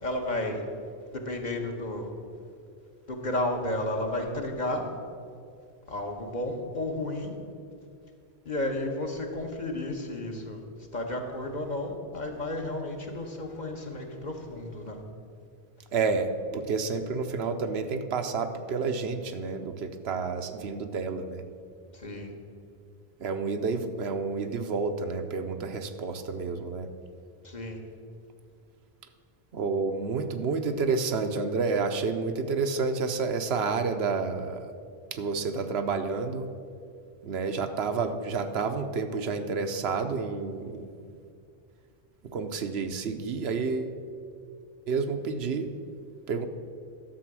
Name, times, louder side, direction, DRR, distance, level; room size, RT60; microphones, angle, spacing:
voice 1, 0.0-0.6 1.1-2.1 3.1-4.9 5.9-7.3 8.4-10.6 10.9-15.0 21.9-22.3 27.4-27.8, left 1 dB, 45° left, 2 dB, 1.2 m, -32 dB
voice 2, 15.9-21.4 23.2-26.9 29.5-34.7 35.1-36.5 37.2-41.2 42.3-43.9 44.9-45.7 46.3-46.5, right 4 dB, 75° right, 7 dB, 1.0 m, -30 dB
11.5 x 6.9 x 6.1 m, 2.3 s
omnidirectional pair, 1.1 m